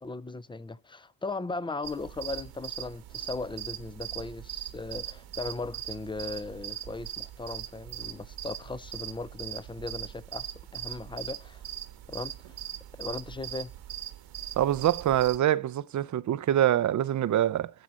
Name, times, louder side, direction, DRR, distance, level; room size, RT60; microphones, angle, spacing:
voice 1, 0.0-11.6 12.1-12.6 13.0-13.7, left 3 dB, 10° left, 0.6 m, -38 dB
sound 1, 1.8-15.4, right 12 dB, 75° right, 1.5 m, -40 dB
voice 2, 14.6-17.7, right 11 dB, 45° right, 0.6 m, -25 dB
12.0 x 4.2 x 6.3 m
cardioid pair, 95°, 40 cm